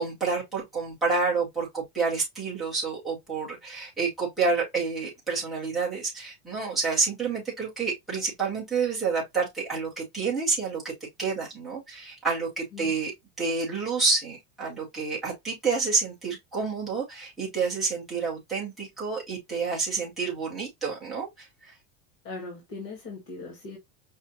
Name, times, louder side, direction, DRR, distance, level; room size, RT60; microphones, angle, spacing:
voice 1, 0.0-10.9 11.2-13.1 13.4-21.7, right 4 dB, ahead, 0.4 m, -29 dB
voice 2, 22.2-23.8, left 3 dB, 30° left, 1.4 m, -39 dB
5.3 x 2.5 x 2.5 m
supercardioid pair, 170°, 45 cm